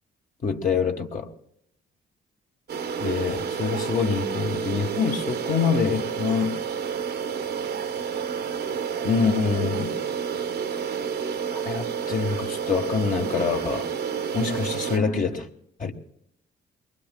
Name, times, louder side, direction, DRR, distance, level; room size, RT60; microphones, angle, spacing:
voice 1, 0.4-1.3 3.0-6.6 9.0-9.9 11.5-13.9 14.3-15.5 15.8-15.9, left 5 dB, 45° left, 2 dB, 1.3 m, -25 dB
sound 1, 2.7-15.0, right 6 dB, 55° right, 0.8 m, -30 dB
23.0 x 20.5 x 2.3 m, 0.73 s
cardioid pair, 90°, 20 cm